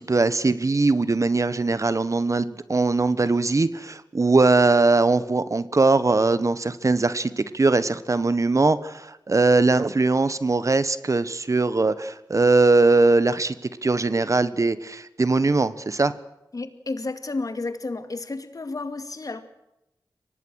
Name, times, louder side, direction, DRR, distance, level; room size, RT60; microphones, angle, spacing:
voice 1, 0.0-13.5 13.8-16.1, right 3 dB, 45° right, 15 dB, 1.2 m, -21 dB
voice 2, 16.5-19.4, left 3 dB, 50° left, 10 dB, 2.3 m, -31 dB
24.0 x 18.5 x 6.4 m, 0.89 s
cardioid pair, 50°, 8 cm